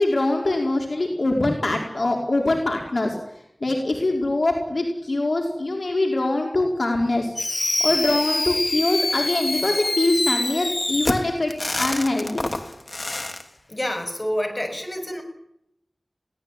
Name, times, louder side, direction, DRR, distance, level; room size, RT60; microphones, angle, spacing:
voice 1, 0.0-3.2 3.6-7.3 7.8-12.5, left 2 dB, 75° left, 1 dB, 4.5 m, -23 dB
Fireworks, 7.4-13.4, left 2 dB, 55° left, 3.1 m, -26 dB
voice 2, 13.7-15.2, equal, 40° left, 6 dB, 7.2 m, -28 dB
23.5 x 18.0 x 9.1 m, 0.74 s
wide cardioid pair, 50°, 0 cm